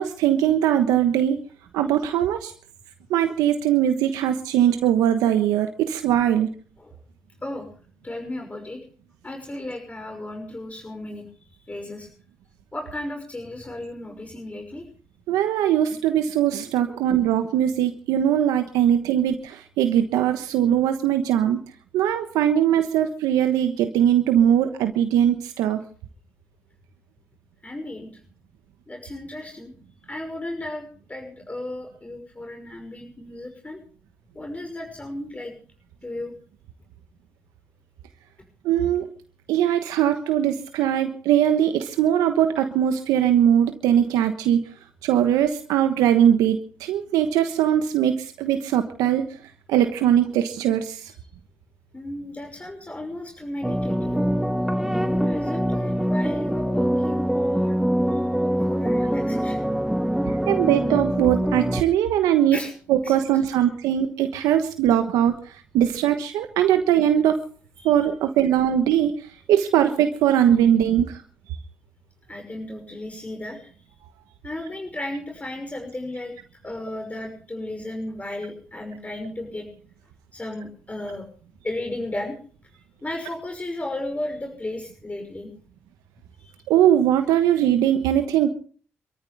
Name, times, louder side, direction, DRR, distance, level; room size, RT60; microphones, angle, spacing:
voice 1, 0.0-1.4 1.7-2.5 3.1-6.5 15.3-21.6 21.9-25.8 38.6-39.1 39.5-44.6 45.0-49.3 49.7-51.1 60.5-62.6 62.9-65.3 65.7-67.4 67.8-69.1 69.5-71.2 86.7-88.5, right 10 dB, 85° right, 7 dB, 1.2 m, -20 dB
voice 2, 8.0-8.8 9.2-11.3 11.7-12.1 12.7-14.8 27.6-28.1 28.9-29.7 30.1-33.8 34.3-35.5 36.0-36.3 51.9-54.4 54.8-59.6 62.5-62.7 63.0-63.5 67.8-68.1 72.3-73.9 74.4-76.3 76.6-79.6 80.3-81.3 81.6-82.4 83.0-85.5 86.4-86.5, left 1 dB, 25° left, 3 dB, 6.1 m, -34 dB
sound 1, 53.6-61.8, equal, 5° right, 1.6 m, -24 dB
27.5 x 14.0 x 3.5 m, 0.43 s
hypercardioid pair, 45°, 6 cm